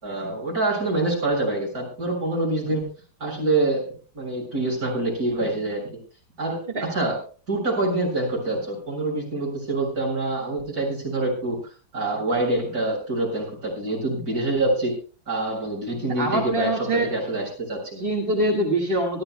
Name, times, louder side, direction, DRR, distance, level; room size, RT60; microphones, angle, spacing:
voice 1, 0.0-2.9 3.2-6.0 6.4-6.6 6.9-7.2 7.5-11.6 11.9-14.9 15.3-18.0, right 2 dB, 50° right, -1 dB, 7.8 m, -26 dB
voice 2, 16.2-17.1 18.0-19.2, right 1 dB, 30° right, 1 dB, 1.8 m, -24 dB
25.5 x 13.5 x 2.2 m, 0.39 s
omnidirectional pair, 2.1 m